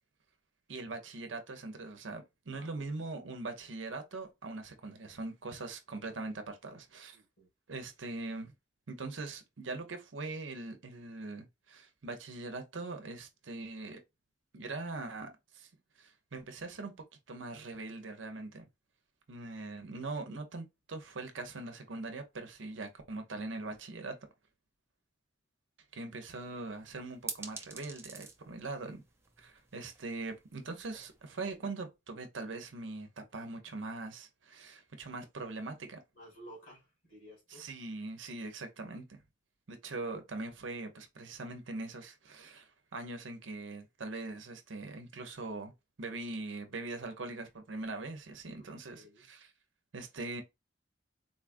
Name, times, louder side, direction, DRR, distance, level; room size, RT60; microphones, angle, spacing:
voice 1, 0.7-7.2 7.7-8.5 8.9-14.0 14.5-15.7 16.0-16.9 17.3-18.7 19.3-24.2 25.9-29.0 29.4-36.0 37.5-39.2 39.7-45.7 46.0-49.5 49.9-50.4, right 3 dB, 70° right, 0.8 m, -42 dB
voice 2, 2.5-3.3 7.1-7.5 36.2-37.7 48.5-48.7 48.9-49.3, equal, 65° left, 2.3 m, -55 dB
sound 1, 26.3-31.6, right 4 dB, 15° right, 0.6 m, -48 dB
3.9 x 2.4 x 2.5 m
head